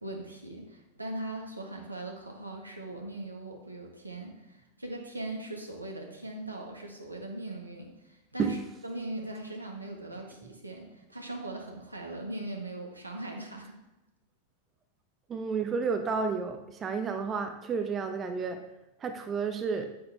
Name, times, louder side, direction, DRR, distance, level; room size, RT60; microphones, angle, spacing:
voice 1, 0.0-8.6 8.8-13.7, right 2 dB, 85° right, 1 dB, 1.7 m, -40 dB
voice 2, 15.3-18.6 19.0-19.9, right 5 dB, 25° right, 6 dB, 0.8 m, -31 dB
9.6 x 9.5 x 3.5 m, 0.99 s
figure-of-eight pair, 90°, 0 cm